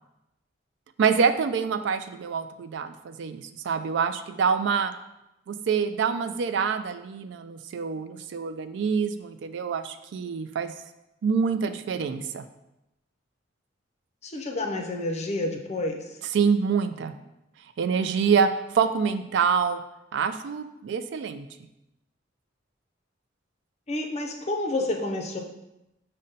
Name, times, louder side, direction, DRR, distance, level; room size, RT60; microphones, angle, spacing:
voice 1, 1.0-4.9 5.5-10.7 11.2-12.4 16.2-17.1 17.8-19.8 20.1-21.5, right 6 dB, 65° right, 10 dB, 0.3 m, -26 dB
voice 2, 14.2-16.0 23.9-25.4, left 2 dB, 35° left, 2 dB, 0.5 m, -29 dB
5.2 x 2.1 x 3.9 m, 0.90 s
head